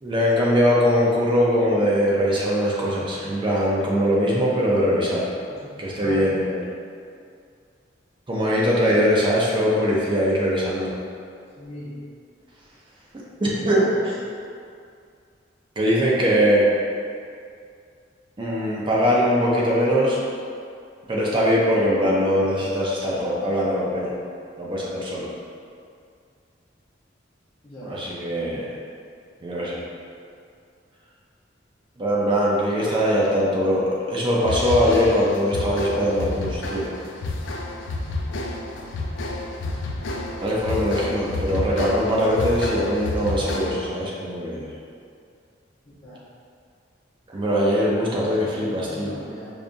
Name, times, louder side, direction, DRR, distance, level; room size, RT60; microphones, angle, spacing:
voice 1, 0.0-5.3 5.8-6.6 8.3-10.9 13.4-13.8 15.8-16.7 18.4-20.2 21.1-24.2 24.6-25.3 27.8-28.7 29.4-29.8 32.0-36.9 40.4-44.7 47.3-49.1, equal, 25° right, -5 dB, 0.5 m, -21 dB
voice 2, 5.5-6.3 11.6-11.9 13.6-14.0 27.6-27.9 46.0-46.2 48.1-49.5, equal, 30° left, -13 dB, 0.9 m, -38 dB
sound 1, 34.4-44.0, left 2 dB, 85° left, 0.4 m, -29 dB
5.1 x 2.4 x 2.5 m, 2.3 s
head